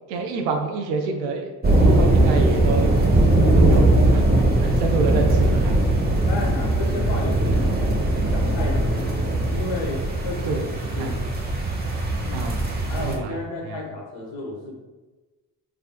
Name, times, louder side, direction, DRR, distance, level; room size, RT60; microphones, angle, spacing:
voice 1, 0.1-1.5 1.8-2.9 3.5-4.3 4.6-5.8 6.0-6.1 10.4-10.6 11.0-11.1 12.3-12.6 13.0-13.3 13.7-13.8, right 4 dB, 80° right, 4 dB, 0.7 m, -27 dB
sound 1, 1.6-13.2, right 1 dB, 20° right, 1.0 m, -20 dB
voice 2, 6.1-7.8 8.3-11.2 12.2-12.4 12.9-14.7, left 2 dB, 65° left, -2 dB, 1.4 m, -33 dB
4.6 x 3.6 x 2.3 m, 1.2 s
hypercardioid pair, 40°, 49 cm